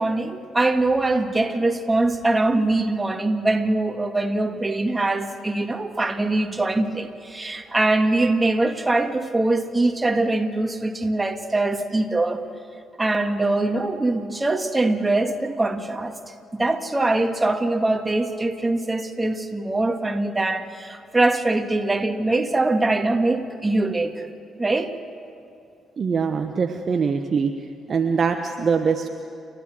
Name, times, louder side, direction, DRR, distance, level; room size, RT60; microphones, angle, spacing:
voice 1, 0.0-12.4 13.0-16.1 16.5-24.3 24.6-24.9, right 2 dB, 20° right, 5 dB, 2.0 m, -22 dB
voice 2, 26.0-27.5 27.9-29.1, right 5 dB, 45° right, 6 dB, 1.1 m, -23 dB
29.5 x 12.5 x 7.8 m, 2.5 s
hypercardioid pair, 45°, 0 cm